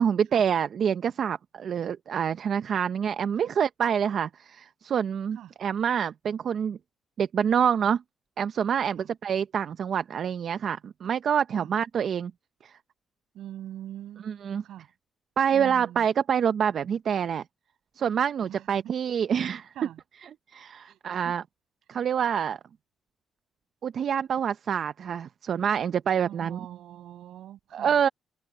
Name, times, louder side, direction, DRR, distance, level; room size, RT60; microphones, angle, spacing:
voice 1, 0.0-6.8 7.2-8.0 8.4-12.3 12.6-12.7 14.3-14.6 15.4-17.4 18.0-19.7 20.5-21.4 21.9-22.6 23.8-26.6 27.7-28.1, right 8 dB, 60° right, 0.6 m, -26 dB
voice 2, 13.3-14.9 15.5-16.1 18.4-18.9 19.7-20.0 20.8-21.4 26.2-28.0, right 12 dB, 80° right, 7.0 m, -43 dB
cardioid pair, 100°, 0 cm